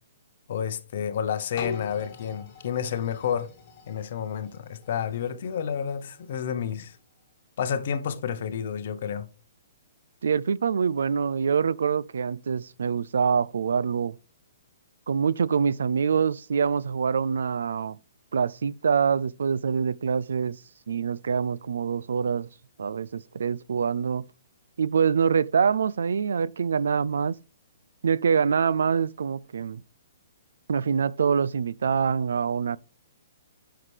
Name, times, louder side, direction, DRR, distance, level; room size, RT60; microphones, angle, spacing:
voice 1, 0.5-3.5 3.9-7.0 7.6-9.3, left 8 dB, 40° left, 0.7 m, -30 dB
sound 1, 1.6-7.3 7.9-8.0, left 5 dB, 20° left, 1.7 m, -43 dB
voice 2, 10.2-14.2 15.1-18.0 18.3-20.6 20.9-22.5 22.8-24.2 24.8-27.4 28.0-29.8 30.7-32.8, right 6 dB, 75° right, 0.3 m, -25 dB
9.4 x 5.8 x 3.3 m
hypercardioid pair, 180°, 0 cm